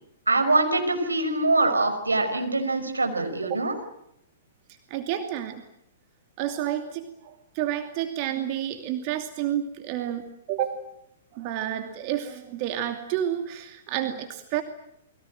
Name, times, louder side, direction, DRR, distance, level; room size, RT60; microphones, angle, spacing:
voice 1, 0.3-3.7, right 2 dB, 80° right, 6 dB, 5.4 m, -23 dB
voice 2, 4.9-5.6 6.4-10.8 11.3-14.6, right 11 dB, 40° right, 6 dB, 2.6 m, -30 dB
29.5 x 22.5 x 7.7 m, 0.79 s
figure-of-eight pair, 110°, 0 cm